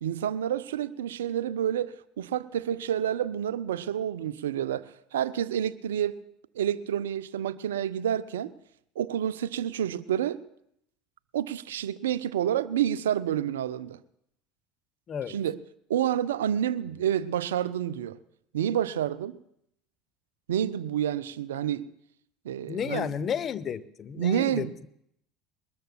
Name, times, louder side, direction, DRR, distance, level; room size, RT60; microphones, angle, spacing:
voice 1, 0.0-6.2 6.6-8.5 9.0-10.4 11.3-14.0 15.3-15.6 15.9-18.2 18.5-19.4 20.5-21.9 22.4-23.1 24.2-24.9, right 10 dB, 75° right, 0.4 m, -29 dB
voice 2, 22.7-24.9, left 7 dB, 40° left, 0.6 m, -32 dB
22.5 x 20.0 x 2.3 m
figure-of-eight pair, 65°, 0 cm